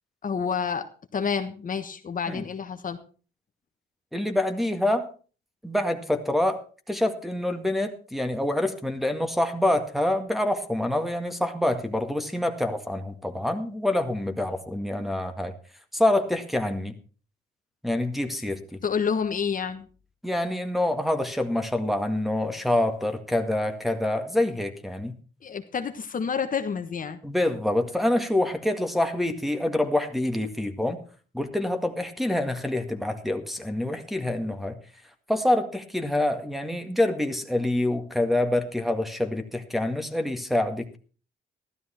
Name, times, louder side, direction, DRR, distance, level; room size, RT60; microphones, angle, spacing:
voice 1, 0.2-0.9 1.1-3.0 18.8-19.9 25.4-27.2, left 6 dB, 40° left, 7 dB, 1.3 m, -29 dB
voice 2, 4.1-5.1 5.6-6.6 6.9-15.5 15.9-16.9 17.8-18.8 20.2-25.1 27.2-31.0 31.3-34.8 35.3-41.0, left 1 dB, ahead, 4 dB, 1.9 m, -26 dB
14.5 x 12.5 x 4.4 m, 0.39 s
cardioid pair, 90°, 20 cm